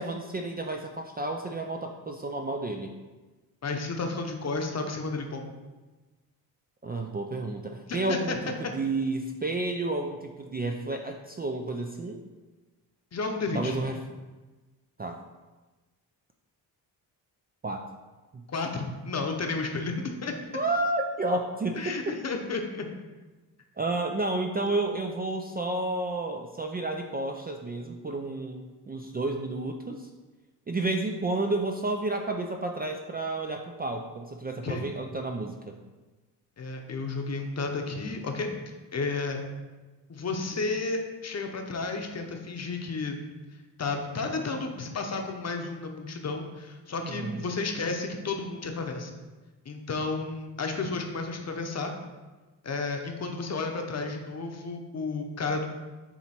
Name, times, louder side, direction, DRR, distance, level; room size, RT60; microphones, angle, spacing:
voice 1, 0.0-3.0 6.8-8.4 8.7-12.2 13.5-14.0 15.0-15.2 17.6-17.9 18.3-18.4 20.5-22.2 23.8-30.1 30.7-35.8 47.0-47.4, right 2 dB, 25° right, 3 dB, 0.4 m, -31 dB
voice 2, 3.6-5.5 7.9-8.4 13.1-13.8 18.5-19.9 20.2-20.3 21.7-22.9 34.6-34.8 36.6-39.4 40.1-43.2 43.8-49.1 49.6-51.9 52.6-55.7, left 3 dB, 40° left, 4 dB, 0.8 m, -32 dB
7.4 x 3.0 x 4.3 m, 1.2 s
cardioid pair, 100°, 40 cm